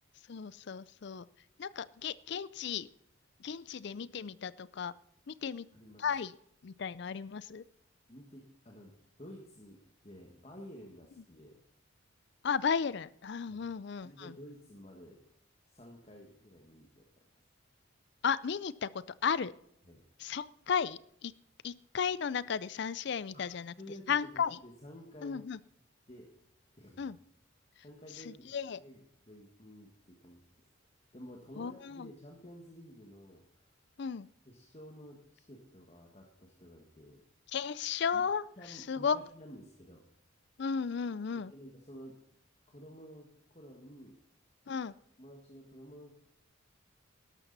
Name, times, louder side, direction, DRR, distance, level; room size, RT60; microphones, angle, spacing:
voice 1, 0.3-1.3 1.6-2.9 3.4-4.9 5.3-5.7 6.0-6.3 6.6-7.6 12.4-14.3 18.2-18.9 19.2-19.5 20.2-21.3 21.6-23.7 24.1-24.6 25.2-25.6 27.0-27.2 28.1-28.8 31.6-32.1 34.0-34.3 37.5-39.2 40.6-41.5 44.7-44.9, left 6 dB, 55° left, 19 dB, 0.4 m, -34 dB
voice 2, 5.7-6.1 8.1-8.9 9.2-11.6 13.5-13.6 14.0-15.2 15.7-17.1 19.9-20.0 23.3-23.4 23.8-24.3 24.6-25.5 26.1-26.3 26.7-27.1 27.8-28.4 28.8-30.7 31.1-33.7 34.5-37.2 38.1-38.2 38.6-40.0 41.5-42.1 42.7-44.2 45.2-46.3, equal, 30° left, 0 dB, 1.6 m, -52 dB
13.0 x 12.0 x 4.1 m, 0.73 s
head